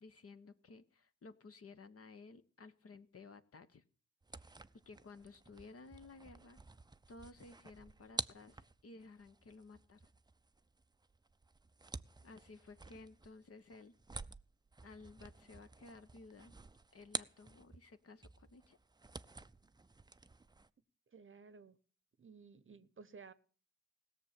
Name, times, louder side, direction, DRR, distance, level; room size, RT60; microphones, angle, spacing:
voice 1, 0.0-3.8 4.4-4.6 4.9-6.6 7.1-10.1 12.2-13.9 14.8-16.6 16.9-18.8, left 3 dB, 50° left, 10 dB, 1.1 m, -56 dB
sound 1, 4.2-17.9 18.2-20.7, right 3 dB, 15° right, 0.5 m, -50 dB
voice 2, 21.1-21.8 22.2-23.3, right 5 dB, 40° right, 16 dB, 0.9 m, -56 dB
16.5 x 6.7 x 7.5 m, 0.44 s
supercardioid pair, 50°, 31 cm